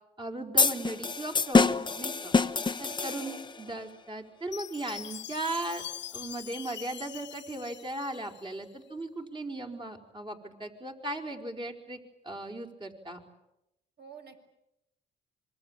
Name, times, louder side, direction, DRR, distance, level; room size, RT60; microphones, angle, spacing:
voice 1, 0.2-2.4 2.8-5.8 6.1-13.2, right 1 dB, 25° right, 3 dB, 5.0 m, -37 dB
sound 1, 0.6-3.6, left 4 dB, 25° left, 1.1 m, -26 dB
voice 2, 3.0-3.5 14.0-14.4, right 5 dB, 55° right, 6 dB, 6.2 m, -49 dB
Chime, 4.5-8.6, left 10 dB, 65° left, 1.4 m, -43 dB
26.0 x 24.0 x 9.0 m, 0.88 s
cardioid pair, 90°, 20 cm